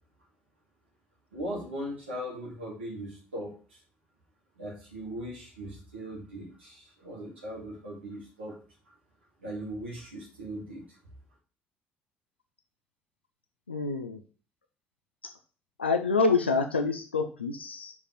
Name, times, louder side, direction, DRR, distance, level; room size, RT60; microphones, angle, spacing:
voice 1, 1.3-3.8 4.6-8.6 9.4-10.8, equal, 85° right, -4 dB, 2.0 m, -39 dB
voice 2, 13.7-14.2 15.8-17.9, left 4 dB, 90° left, 6 dB, 0.6 m, -27 dB
5.5 x 4.8 x 5.9 m, 0.38 s
figure-of-eight pair, 55°, 6 cm